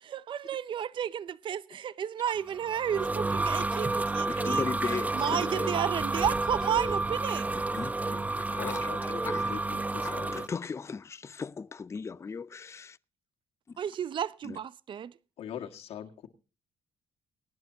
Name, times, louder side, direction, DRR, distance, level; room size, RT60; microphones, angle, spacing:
voice 1, 0.0-4.6 5.1-7.5 13.8-15.1, right 9 dB, 50° right, 0.6 m, -32 dB
sound 1, 2.5-10.5, right 2 dB, 15° right, 0.7 m, -30 dB
voice 2, 4.3-5.8 7.7-9.6 10.0-13.0 14.4-14.6, left 5 dB, 25° left, 0.5 m, -37 dB
voice 3, 8.5-10.4 15.4-16.3, left 9 dB, 70° left, 2.0 m, -41 dB
19.0 x 11.5 x 2.8 m
cardioid pair, 90°, 11 cm